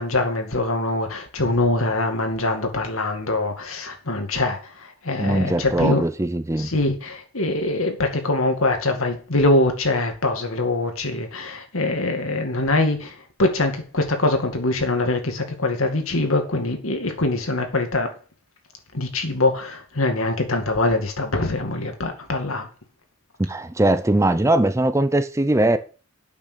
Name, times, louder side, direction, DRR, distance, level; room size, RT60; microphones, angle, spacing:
voice 1, 0.0-6.1 6.6-18.1 18.9-22.7, left 2 dB, 90° left, 2.2 m, -23 dB
voice 2, 5.2-6.7 23.4-25.8, right 1 dB, 15° right, 0.6 m, -20 dB
8.4 x 6.3 x 6.9 m
head